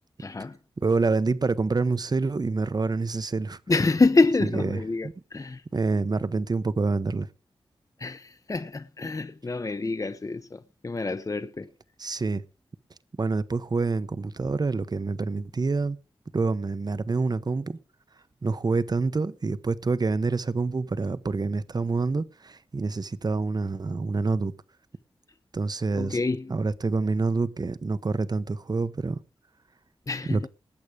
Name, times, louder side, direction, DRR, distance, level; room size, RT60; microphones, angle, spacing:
voice 1, 0.2-0.6 3.7-5.6 8.0-11.7 26.0-26.5 30.1-30.5, left 3 dB, 35° left, 0.8 m, -26 dB
voice 2, 0.8-3.6 4.5-4.8 5.7-7.3 12.0-12.4 13.2-16.0 16.3-17.8 18.4-24.5 25.5-26.2 26.5-29.2 30.3-30.4, right 3 dB, 45° right, 1.0 m, -27 dB
19.0 x 8.3 x 4.9 m
cardioid pair, 65°, 9 cm